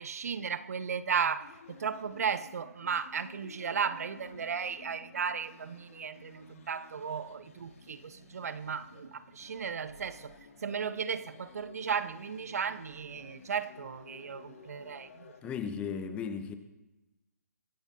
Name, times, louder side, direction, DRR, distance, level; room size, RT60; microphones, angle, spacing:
voice 1, 0.0-10.3 10.6-15.5, right 6 dB, 60° right, 0.7 m, -35 dB
sound 1, 1.4-15.4, left 5 dB, 55° left, 1.8 m, -54 dB
voice 2, 15.4-16.6, left 6 dB, 15° left, 0.7 m, -35 dB
23.5 x 11.5 x 2.7 m
hypercardioid pair, 145°, 9 cm